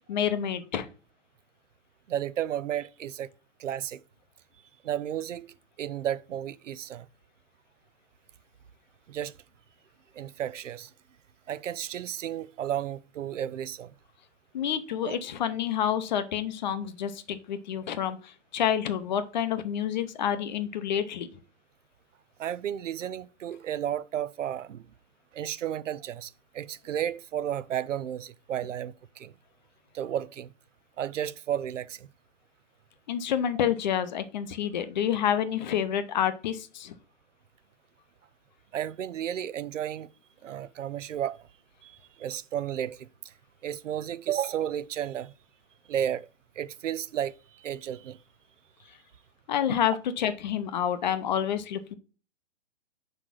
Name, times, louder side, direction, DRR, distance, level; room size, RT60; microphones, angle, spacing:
voice 1, 0.1-0.9 14.5-18.2 18.5-21.3 33.1-36.9 49.5-51.9, left 9 dB, 35° left, 0.7 m, -28 dB
voice 2, 2.1-3.3 3.6-4.0 4.8-5.5 5.8-7.1 9.1-9.3 10.1-10.9 11.5-13.9 15.0-15.2 22.4-24.8 25.3-29.3 29.9-30.5 31.0-32.1 38.7-40.1 40.4-41.5 41.8-43.3 43.6-45.3 45.9-46.3 46.6-48.2, right 10 dB, 80° right, 0.5 m, -33 dB
4.8 x 4.2 x 5.8 m
hypercardioid pair, 140°, 37 cm